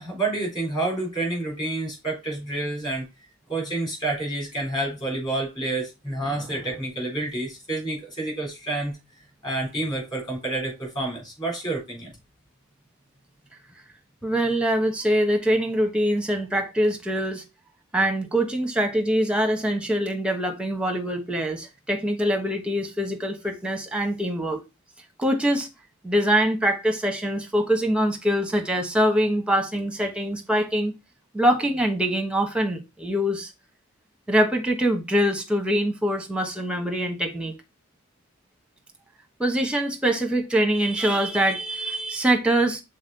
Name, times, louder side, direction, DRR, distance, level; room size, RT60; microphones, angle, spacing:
voice 1, 0.0-3.1 3.5-9.0 9.4-12.1, right 2 dB, 20° left, 3.5 m, -29 dB
voice 2, 14.2-17.4 17.9-24.6 25.2-25.7 26.0-30.9 31.3-33.5 34.3-37.5 39.4-42.8, right 1 dB, 5° right, 1.0 m, -24 dB
6.2 x 4.0 x 4.0 m
head